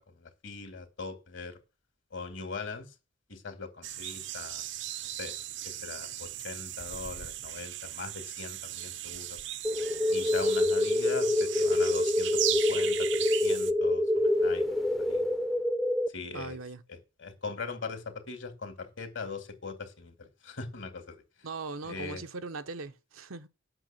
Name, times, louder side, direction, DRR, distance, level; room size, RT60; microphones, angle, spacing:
voice 1, 0.1-1.6 2.1-2.8 3.3-4.6 5.2-5.4 5.6-9.4 10.1-15.3 16.1-16.6 16.9-21.2 21.8-22.2, left 4 dB, 65° left, 2.1 m, -41 dB
sound 1, 3.8-13.7, right 12 dB, 60° right, 0.6 m, -37 dB
sound 2, 9.6-16.1, left 1 dB, ahead, 0.5 m, -26 dB
voice 2, 16.3-16.8 21.4-23.5, right 3 dB, 85° right, 0.9 m, -39 dB
7.9 x 6.3 x 7.4 m
head